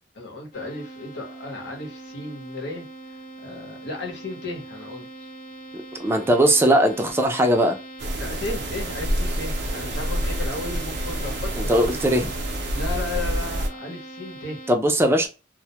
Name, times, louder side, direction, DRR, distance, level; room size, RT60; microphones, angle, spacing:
voice 1, 0.1-2.9 3.4-5.3 8.2-12.0 12.7-14.6, left 2 dB, 80° left, 0.9 m, -34 dB
sound 1, 0.5-14.7, right 1 dB, 50° left, 0.9 m, -41 dB
voice 2, 5.7-7.8 11.6-12.3 14.7-15.3, right 1 dB, 15° right, 0.4 m, -20 dB
sound 2, 8.0-13.7, right 1 dB, 75° right, 0.5 m, -28 dB
2.1 x 2.1 x 2.8 m
head